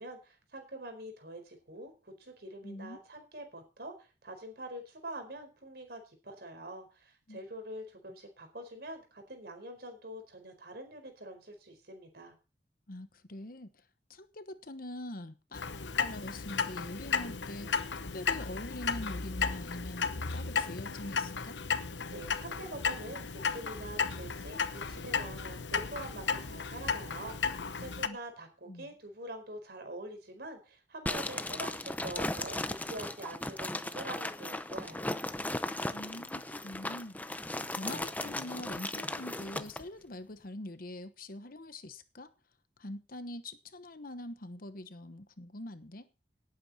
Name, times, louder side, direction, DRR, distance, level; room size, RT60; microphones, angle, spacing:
voice 1, 0.0-12.3 22.1-35.2, right 1 dB, 60° right, 4.6 m, -45 dB
voice 2, 2.6-3.0 7.3-7.4 12.9-13.7 14.1-17.8 18.1-21.6 28.0-28.2 28.7-28.9 35.9-37.4 37.7-42.3 42.8-46.1, left 1 dB, 55° left, 1.1 m, -44 dB
Clock, 15.5-28.1, left 5 dB, 90° left, 1.0 m, -34 dB
sound 1, 31.1-39.8, left 1 dB, 10° left, 0.7 m, -37 dB
18.5 x 8.8 x 4.3 m
head